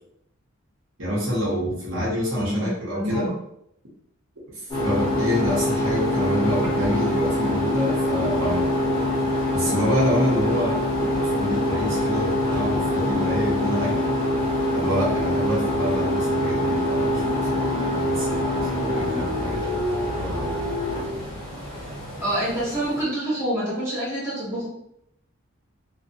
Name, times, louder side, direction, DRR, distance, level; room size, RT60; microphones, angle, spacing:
voice 1, 1.0-3.3 4.5-8.7 9.5-10.8 11.4-14.0 14.7-19.6 20.2-20.6, equal, 65° right, -6 dB, 0.9 m, -27 dB
voice 2, 2.3-3.3 22.2-24.7, right 1 dB, 15° right, -10 dB, 1.0 m, -27 dB
sound 1, 4.7-23.0, left 1 dB, 20° left, 1.3 m, -24 dB
2.6 x 2.2 x 2.6 m, 0.73 s
head